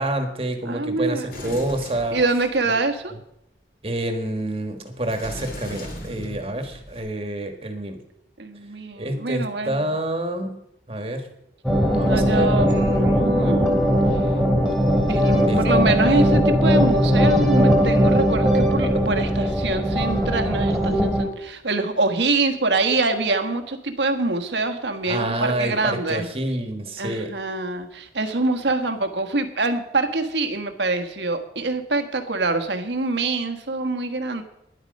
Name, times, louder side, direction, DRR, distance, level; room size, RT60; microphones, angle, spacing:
voice 1, 0.0-2.2 3.8-8.0 9.0-10.6 10.9-11.3 11.9-12.7 15.5-15.6 25.1-27.3, right 1 dB, 35° right, 6 dB, 1.6 m, -28 dB
voice 2, 0.6-1.6 2.1-3.1 8.4-10.0 12.0-13.9 15.1-26.3 27.0-34.4, right 3 dB, 85° right, 7 dB, 1.4 m, -25 dB
Sliding door, 1.3-2.8 5.0-7.0, left 1 dB, 50° left, 2.8 m, -37 dB
sound 1, 11.6-21.2, equal, ahead, 2.5 m, -19 dB
12.0 x 10.5 x 5.3 m, 0.81 s
head